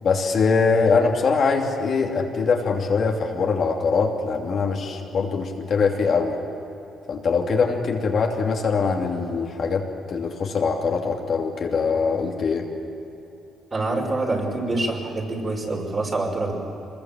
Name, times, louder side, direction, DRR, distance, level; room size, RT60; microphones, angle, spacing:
voice 1, 0.0-6.4 7.1-12.6, left 4 dB, 55° left, 0 dB, 2.9 m, -22 dB
voice 2, 13.7-16.6, right 2 dB, 35° right, 0 dB, 5.5 m, -26 dB
25.0 x 21.5 x 7.7 m, 2.8 s
cardioid pair, 90°, 0 cm